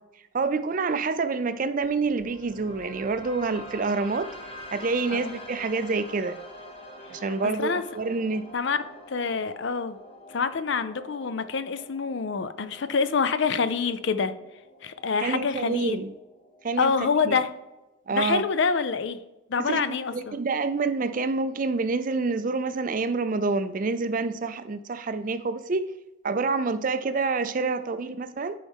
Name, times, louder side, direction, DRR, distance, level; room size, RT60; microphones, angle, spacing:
voice 1, 0.3-4.3 4.7-6.4 7.1-8.4 15.2-16.1 16.6-16.9 17.3-17.4 18.1-18.4 19.6-19.8 20.1-25.9 26.2-28.5, right 4 dB, 40° right, 11 dB, 0.4 m, -27 dB
sound 1, 1.8-17.8, equal, 25° left, 0.9 m, -46 dB
voice 2, 9.1-10.0 10.3-14.3 14.8-16.0 16.8-17.5 18.1-19.2 19.5-20.4, left 5 dB, 55° left, 12 dB, 0.5 m, -26 dB
11.5 x 4.7 x 3.5 m, 0.99 s
head